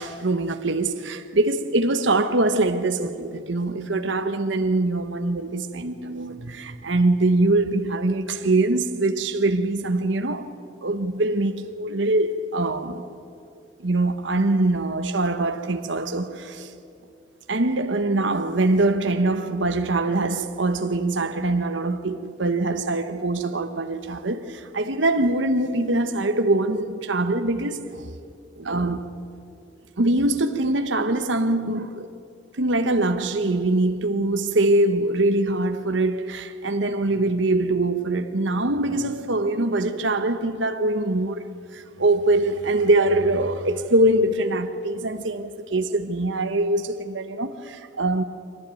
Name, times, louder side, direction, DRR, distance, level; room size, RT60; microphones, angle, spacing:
voice 1, 0.0-10.5 10.8-13.1 13.8-16.7 17.5-28.1 28.6-29.1 30.0-32.1 32.6-48.2, right 2 dB, 80° right, 1.1 m, -23 dB
23.5 x 18.5 x 9.1 m
head